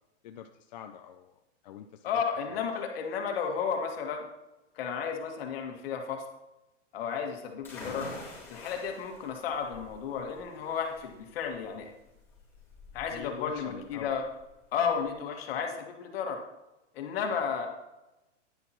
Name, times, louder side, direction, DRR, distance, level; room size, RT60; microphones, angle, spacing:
voice 1, 0.2-1.3 1.6-2.2 2.5-2.7 13.1-14.2, left 10 dB, 40° left, 6 dB, 0.4 m, -45 dB
voice 2, 2.0-4.2 4.8-6.2 6.9-8.1 8.5-11.9 12.9-14.2 14.7-16.4 17.0-17.7, left 6 dB, 55° left, 3 dB, 1.8 m, -33 dB
sound 1, 7.6-15.1, left 2 dB, 5° left, 3.5 m, -47 dB
10.5 x 9.9 x 3.0 m, 0.98 s
hypercardioid pair, 155°, 36 cm